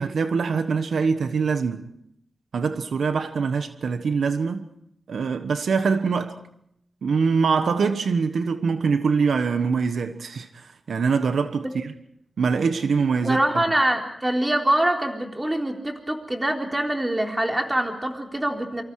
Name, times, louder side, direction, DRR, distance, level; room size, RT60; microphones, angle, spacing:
voice 1, 0.0-1.9 2.5-4.6 5.1-6.4 7.0-11.9 12.4-13.4, right 5 dB, 85° right, 1.3 m, -23 dB
voice 2, 13.2-18.8, right 1 dB, 15° right, 3.8 m, -24 dB
28.0 x 25.5 x 4.8 m
wide cardioid pair, 95°, 0 cm